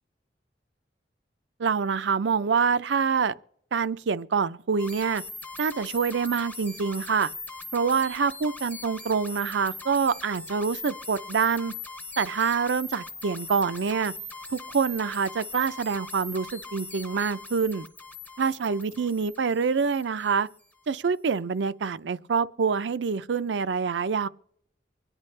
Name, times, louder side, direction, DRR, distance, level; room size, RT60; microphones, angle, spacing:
voice 1, 1.6-3.3 3.7-5.2 5.6-7.3 7.7-11.7 12.2-14.1 14.5-17.9 18.4-20.5 20.9-24.3, right 5 dB, 80° right, 0.5 m, -26 dB
sound 1, 4.8-20.7, left 3 dB, 10° left, 0.6 m, -41 dB
24.5 x 9.9 x 3.3 m
head